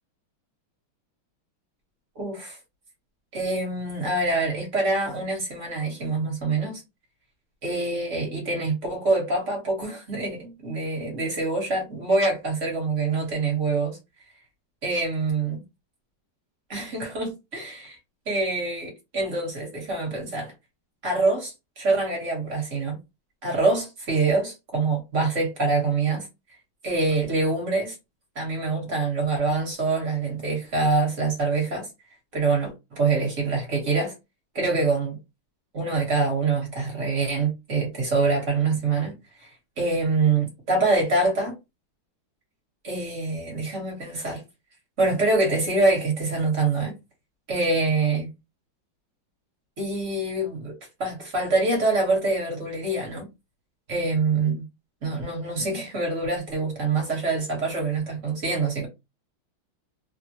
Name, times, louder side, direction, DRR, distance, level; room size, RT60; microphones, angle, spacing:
voice 1, 2.1-2.6 3.3-6.8 7.6-14.0 14.8-15.6 16.7-18.0 18.3-20.5 21.0-23.0 23.4-26.3 26.8-28.0 28.3-31.9 32.3-34.1 34.5-35.2 35.7-41.5 42.8-44.4 45.0-46.9 47.5-48.3 49.8-53.3 53.9-54.7 55.0-58.9, right 3 dB, 45° right, 1.3 m, -25 dB
3.3 x 2.1 x 2.7 m
omnidirectional pair, 2.3 m